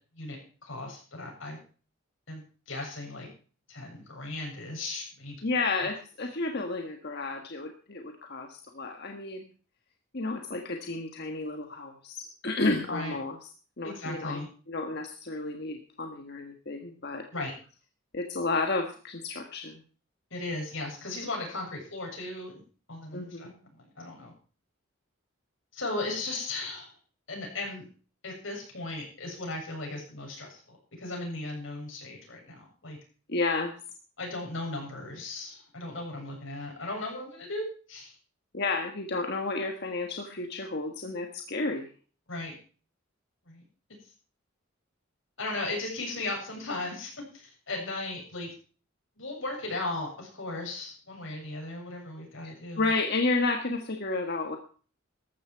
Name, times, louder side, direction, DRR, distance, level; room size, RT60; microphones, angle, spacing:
voice 1, 0.2-1.6 2.3-3.3 3.7-5.5 12.9-13.2 13.8-14.5 17.3-17.5 20.3-22.6 22.9-24.3 25.7-26.9 27.3-27.9 28.2-33.0 34.2-38.1 42.3-42.5 43.5-43.6 45.4-48.5 49.2-52.9, left 2 dB, 65° left, 0 dB, 7.5 m, -37 dB
voice 2, 5.4-9.5 10.1-13.4 13.8-14.4 14.7-17.2 18.1-19.8 23.1-23.5 33.3-33.7 38.5-41.9 52.8-54.6, left 3 dB, 50° left, 4 dB, 1.5 m, -31 dB
14.5 x 12.5 x 4.7 m, 0.39 s
head